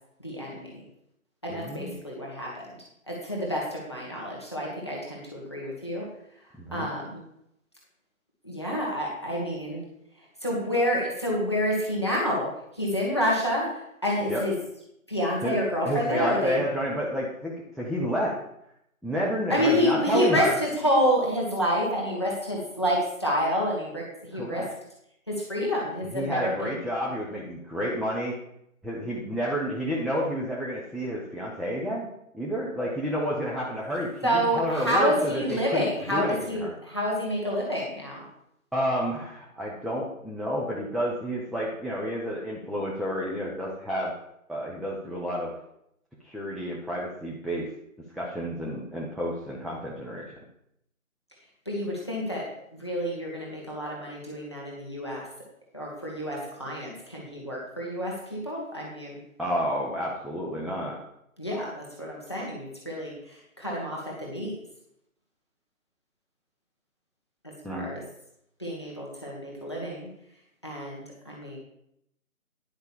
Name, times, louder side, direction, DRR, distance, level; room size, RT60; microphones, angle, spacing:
voice 1, 0.2-0.8 1.4-2.8 3.1-6.1 6.7-7.2 8.4-9.8 10.4-12.5 12.7-13.7 14.0-14.5 15.1-16.6 19.5-24.6 25.3-26.7 34.2-38.3 51.6-52.5 52.8-55.2 55.7-59.2 61.4-64.5 67.7-68.0 68.6-70.1 70.6-71.6, equal, 20° left, -4 dB, 1.8 m, -28 dB
voice 2, 1.5-1.9 6.6-6.9 14.3-14.4 15.4-15.6 15.8-18.3 19.0-20.6 24.3-24.7 26.1-28.4 28.8-32.1 32.3-36.7 38.7-44.1 44.5-45.5 46.2-47.7 48.1-50.3 59.4-61.0 67.6-67.9, equal, ahead, -5 dB, 0.7 m, -30 dB
10.5 x 5.2 x 7.1 m, 0.76 s
figure-of-eight pair, 175°, 42 cm